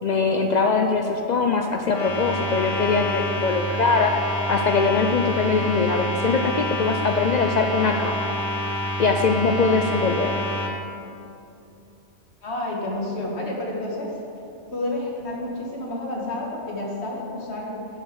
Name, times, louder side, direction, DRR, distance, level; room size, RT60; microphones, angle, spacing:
voice 1, 0.0-4.1 4.5-8.3 9.0-10.4, left 4 dB, 75° left, 4 dB, 0.4 m, -22 dB
sound 1, 1.9-10.7, equal, 30° left, 0.8 m, -28 dB
voice 2, 12.4-14.2 14.7-17.9, left 1 dB, 60° left, -2 dB, 1.8 m, -30 dB
8.3 x 5.2 x 7.0 m, 2.8 s
omnidirectional pair, 1.3 m